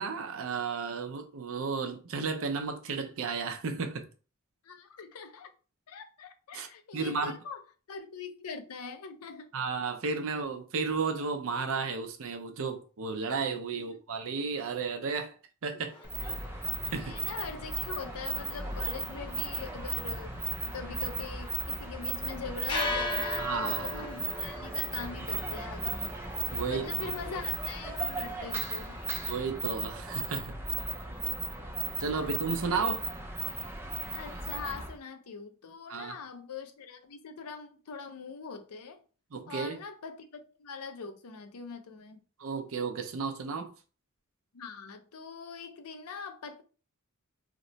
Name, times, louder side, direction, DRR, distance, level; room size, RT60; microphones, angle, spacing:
voice 1, 0.0-4.1 6.5-6.7 6.9-7.4 9.5-15.3 15.6-15.9 16.8-17.2 23.4-24.1 26.5-27.1 29.2-30.5 32.0-33.0 35.9-36.2 39.3-39.8 42.4-43.7, right 5 dB, 65° right, 0.6 m, -33 dB
voice 2, 4.6-5.5 5.9-7.6 7.9-9.5 13.7-14.0 15.7-16.4 16.9-20.3 20.6-26.1 26.6-29.0 31.1-31.8 32.2-32.3 32.7-32.8 34.1-39.0 39.5-42.2 44.5-46.6, left 5 dB, 75° left, 0.5 m, -43 dB
sound 1, 15.9-29.3, left 1 dB, 25° left, 1.0 m, -41 dB
sound 2, 16.0-35.0, right 4 dB, 10° right, 0.5 m, -36 dB
2.9 x 2.1 x 3.9 m
head